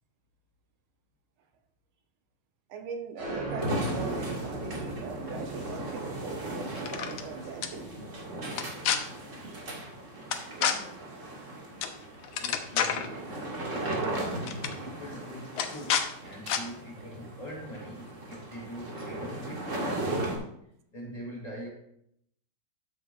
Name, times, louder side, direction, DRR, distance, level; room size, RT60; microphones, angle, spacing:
voice 1, 2.7-7.9 9.4-9.6 10.5-10.8 12.0-12.4, right 5 dB, 90° right, 7 dB, 1.7 m, -41 dB
sound 1, 3.2-10.4, right 2 dB, 55° right, 3.3 m, -40 dB
sound 2, 3.6-20.4, right 1 dB, 40° right, 2.0 m, -37 dB
sound 3, 6.8-7.2 7.6-7.7 8.5-9.0 10.3-10.7 11.8-12.0 12.2-13.1 14.0-14.2 14.4-14.7 15.6-16.1 16.5-16.6, left 8 dB, 80° left, 1.5 m, -28 dB
voice 2, 12.4-20.3 20.9-21.7, equal, 20° left, -2 dB, 2.3 m, -44 dB
12.5 x 7.3 x 2.3 m, 0.73 s
omnidirectional pair, 2.2 m